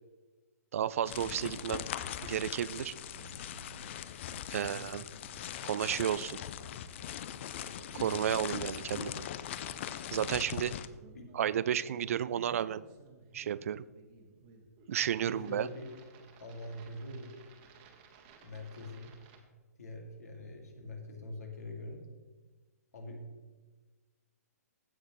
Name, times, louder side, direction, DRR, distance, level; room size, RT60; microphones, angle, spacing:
voice 1, 0.7-1.9 2.2-2.9 4.5-5.1 5.6-6.4 7.9-9.2 10.1-10.7 11.3-12.8 13.3-13.8 14.9-15.7, right 9 dB, 55° right, 18 dB, 0.4 m, -32 dB
sound 1, 1.1-10.9, left 10 dB, 45° left, 0.5 m, -41 dB
sound 2, 2.4-19.4, right 3 dB, 40° right, 1.5 m, -56 dB
voice 2, 15.2-15.9 16.4-17.3 18.4-19.1 19.8-22.0 22.9-23.3, left 1 dB, 70° left, 3 dB, 2.2 m, -44 dB
15.5 x 6.6 x 3.1 m, 1.3 s
figure-of-eight pair, 125°, 9 cm